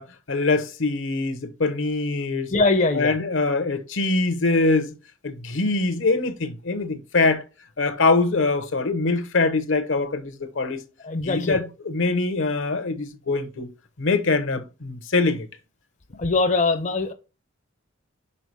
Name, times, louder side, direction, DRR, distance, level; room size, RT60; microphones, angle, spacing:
voice 1, 0.0-2.5 2.9-4.9 5.2-7.4 7.8-10.8 11.2-13.7 14.0-15.5, left 3 dB, 65° left, 0.9 m, -23 dB
voice 2, 2.5-3.1 11.0-11.6 16.2-17.1, left 3 dB, 35° left, 0.7 m, -22 dB
5.5 x 4.9 x 4.7 m
head